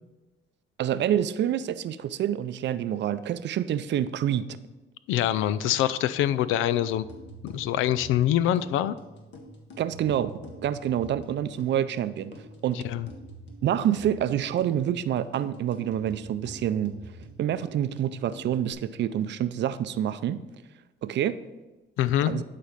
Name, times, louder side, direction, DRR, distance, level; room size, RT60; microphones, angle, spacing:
voice 1, 0.8-4.6 9.8-10.3 10.6-12.3 12.6-12.8 13.6-16.9 17.4-20.4 21.0-21.4 22.3-22.4, right 10 dB, 65° right, 13 dB, 0.5 m, -27 dB
voice 2, 5.1-7.0 7.4-9.0 12.7-13.1 22.0-22.3, left 12 dB, 90° left, 16 dB, 0.4 m, -24 dB
sound 1, 6.7-18.7, equal, 65° left, 1.6 m, -46 dB
11.0 x 4.3 x 5.0 m, 1.1 s
cardioid pair, 90°, 20 cm